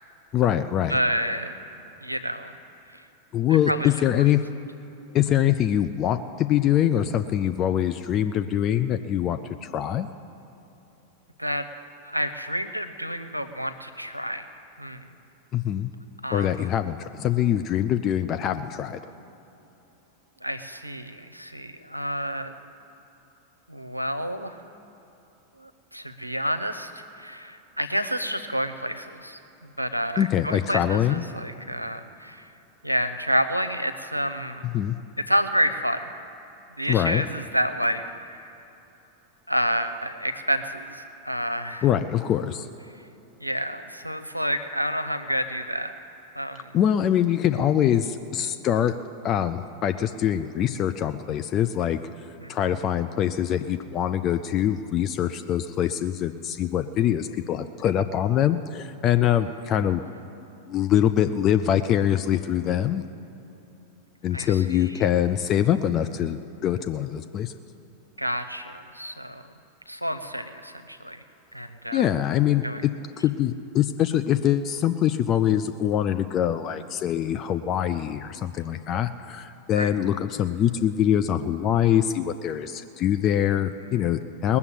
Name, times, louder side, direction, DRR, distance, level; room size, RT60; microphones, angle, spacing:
voice 1, 0.3-1.0 3.3-4.4 5.1-10.1 15.5-15.9 16.3-19.0 30.2-31.2 34.7-35.0 36.9-37.2 41.8-42.7 46.7-48.9 49.2-52.0 52.5-60.0 60.7-63.0 64.2-67.5 71.9-72.9 73.2-84.6, left 10 dB, 35° left, 9 dB, 0.4 m, -24 dB
voice 2, 0.9-1.5 2.0-2.5 3.7-3.9 11.4-11.7 12.0-14.4 14.8-15.1 16.2-16.5 20.4-22.5 23.7-24.6 25.6-26.9 27.1-29.4 29.8-32.4 32.8-34.6 35.3-36.1 36.8-38.4 39.5-41.9 43.4-45.9 46.4-46.7 52.4-52.5 64.3-65.0 68.2-69.4 69.9-71.2 71.5-72.0 72.6-72.8 79.8-79.9, equal, 90° right, 9 dB, 0.7 m, -29 dB
19.5 x 7.0 x 8.3 m, 2.9 s
figure-of-eight pair, 90°, 0 cm